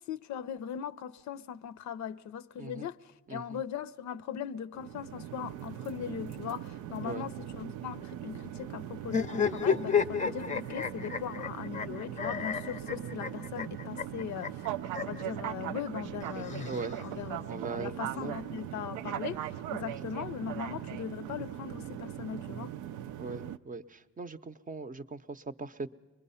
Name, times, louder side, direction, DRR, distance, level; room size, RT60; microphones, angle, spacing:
voice 1, 0.1-14.6 15.0-22.7, left 9 dB, 70° left, 0.6 m, -39 dB
voice 2, 3.3-3.6 7.0-7.3 16.7-17.0 17.4-18.4 23.2-25.9, right 4 dB, 25° right, 0.6 m, -40 dB
sound 1, 4.7-23.6, right 11 dB, 85° right, 0.5 m, -40 dB
sound 2, 9.0-15.2 16.2-17.3, left 6 dB, 25° left, 0.5 m, -32 dB
24.0 x 21.0 x 5.6 m
cardioid pair, 90°, 30 cm